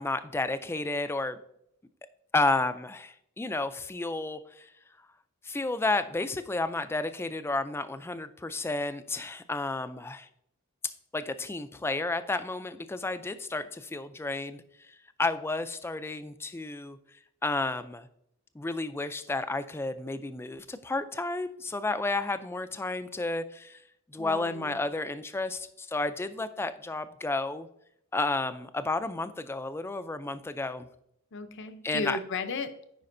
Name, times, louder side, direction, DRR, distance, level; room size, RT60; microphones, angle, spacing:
voice 1, 0.0-1.4 2.3-4.7 5.4-10.3 10.8-17.0 17.4-18.1 18.5-23.8 24.1-27.7 28.1-30.9 31.8-32.2, left 2 dB, 10° left, 11 dB, 0.3 m, -32 dB
voice 2, 24.2-24.8 31.3-32.8, left 4 dB, 55° left, 10 dB, 0.6 m, -35 dB
9.5 x 5.0 x 2.6 m, 0.73 s
head